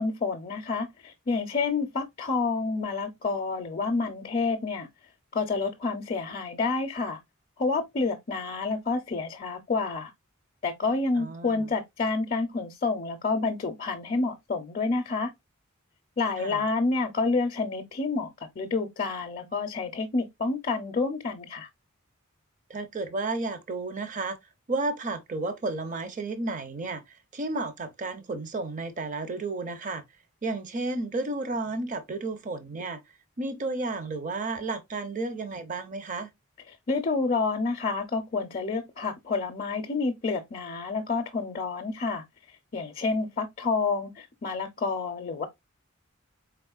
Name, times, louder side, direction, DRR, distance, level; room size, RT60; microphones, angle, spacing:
voice 1, 0.0-4.9 5.3-7.2 7.6-10.1 10.6-15.3 16.2-18.3 18.6-21.7 36.9-42.2 42.7-45.5, left 3 dB, 40° left, 0.5 m, -29 dB
voice 2, 11.1-11.7 16.4-16.6 22.7-24.4 24.7-30.0 30.4-33.0 33.4-36.3, right 3 dB, 40° right, 0.6 m, -32 dB
4.2 x 3.5 x 2.3 m
head